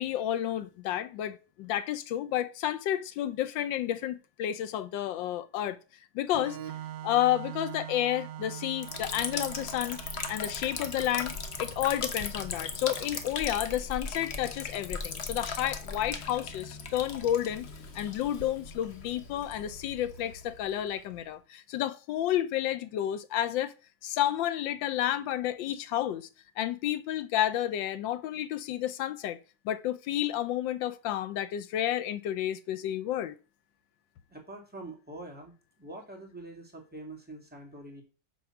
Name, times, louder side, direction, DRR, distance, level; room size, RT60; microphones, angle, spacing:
voice 1, 0.0-5.8 6.1-6.6 7.0-10.0 10.3-17.7 17.9-23.7 24.0-26.3 26.6-29.4 29.6-33.3, left 12 dB, 70° left, 1.3 m, -31 dB
Organ, 6.3-13.9, right 12 dB, 70° right, 1.2 m, -44 dB
Liquid, 8.8-21.3, left 4 dB, 45° left, 0.9 m, -38 dB
voice 2, 34.3-38.0, right 2 dB, 5° right, 2.0 m, -45 dB
8.7 x 3.8 x 5.9 m
omnidirectional pair, 2.2 m